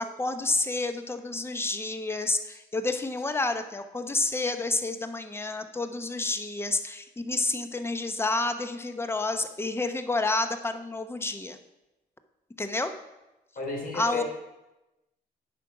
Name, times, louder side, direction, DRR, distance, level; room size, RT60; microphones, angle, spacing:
voice 1, 0.0-11.6 12.6-12.9 13.9-14.2, left 3 dB, 15° left, 8 dB, 0.8 m, -29 dB
voice 2, 13.6-14.2, left 2 dB, 55° left, 0 dB, 3.4 m, -33 dB
9.0 x 6.1 x 4.9 m, 0.99 s
supercardioid pair, 65°, 18 cm